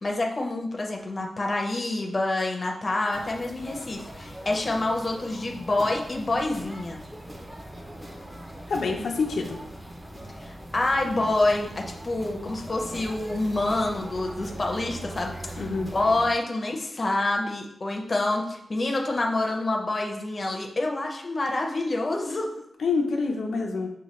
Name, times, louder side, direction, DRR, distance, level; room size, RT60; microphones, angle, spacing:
voice 1, 0.0-7.0 10.4-22.5, left 2 dB, 30° left, 1 dB, 0.6 m, -27 dB
sound 1, 3.1-16.3, right 1 dB, 10° right, 0.6 m, -41 dB
voice 2, 8.7-9.6 15.6-15.9 22.8-23.9, left 4 dB, 90° left, 1 dB, 0.6 m, -26 dB
6.5 x 2.3 x 3.0 m, 0.75 s
wide cardioid pair, 150°, 0 cm